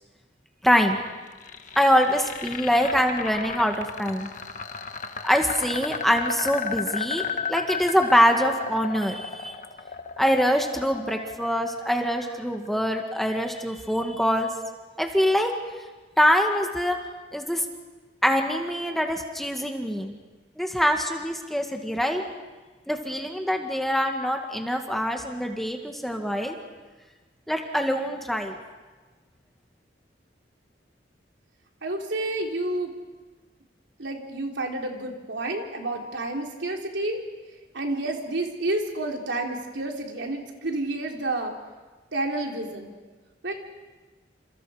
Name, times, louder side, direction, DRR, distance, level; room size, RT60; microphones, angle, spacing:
voice 1, 0.6-1.0 1.8-4.3 5.2-9.5 10.2-14.5 15.0-15.5 16.2-17.0 17.3-17.6 18.2-20.2 20.6-22.2 22.9-26.5 27.5-28.6, equal, ahead, 3 dB, 1.9 m, -24 dB
sound 1, 1.1-13.1, left 5 dB, 45° left, 1.4 m, -34 dB
voice 2, 31.8-32.9 34.0-37.2 37.7-41.5 42.1-42.9 43.4-43.5, right 2 dB, 80° right, 1 dB, 3.5 m, -30 dB
29.0 x 27.5 x 5.1 m, 1.3 s
head